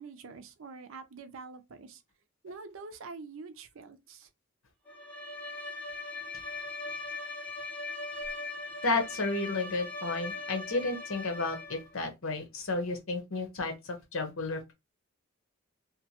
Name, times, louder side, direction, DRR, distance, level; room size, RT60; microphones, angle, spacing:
voice 1, 0.0-2.0 2.4-4.3, right 4 dB, 80° right, 0.5 m, -46 dB
Bowed string instrument, 4.9-12.0, left 2 dB, 10° left, 0.6 m, -40 dB
voice 2, 8.8-14.7, left 3 dB, 90° left, 0.8 m, -32 dB
2.9 x 2.1 x 2.8 m
head